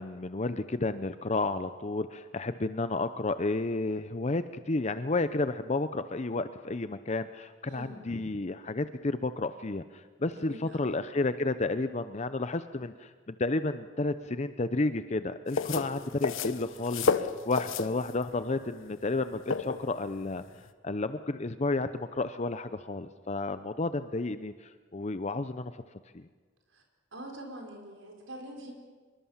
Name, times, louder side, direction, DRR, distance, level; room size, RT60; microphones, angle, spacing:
voice 1, 0.0-20.4 20.8-25.7 26.1-26.2, left 2 dB, 35° left, 11 dB, 0.7 m, -31 dB
voice 2, 7.6-8.0 10.3-10.9 26.7-26.8 27.1-28.7, right 1 dB, 75° right, 2 dB, 4.8 m, -44 dB
sound 1, 15.5-20.7, left 4 dB, 90° left, 1.1 m, -32 dB
25.5 x 23.0 x 7.3 m, 1.4 s
head